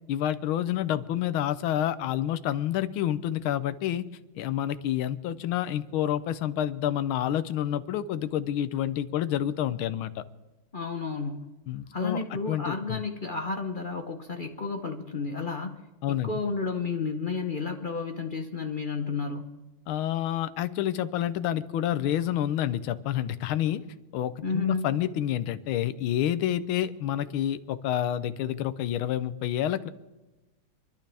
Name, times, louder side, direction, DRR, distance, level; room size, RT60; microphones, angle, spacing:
voice 1, 0.1-4.0 4.4-10.2 11.7-13.0 16.0-16.4 19.9-23.8 24.1-29.9, left 11 dB, 85° left, 14 dB, 1.5 m, -28 dB
voice 2, 10.7-11.5 11.9-15.8 16.2-19.6 24.4-24.9, left 4 dB, 45° left, 4 dB, 0.6 m, -32 dB
27.0 x 12.0 x 3.4 m, 1.1 s
omnidirectional pair, 2.2 m